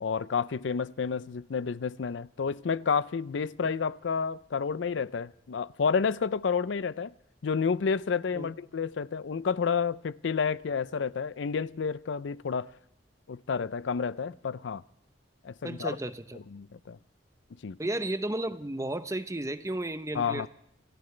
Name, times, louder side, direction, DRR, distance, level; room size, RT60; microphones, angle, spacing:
voice 1, 0.0-7.1 7.4-12.7 13.3-14.8 15.4-16.0 16.5-17.0 17.6-17.8 20.1-20.5, left 5 dB, 85° left, 0.5 m, -30 dB
voice 2, 15.6-16.4 17.8-20.5, right 1 dB, 15° right, 0.7 m, -33 dB
28.0 x 14.5 x 3.3 m
head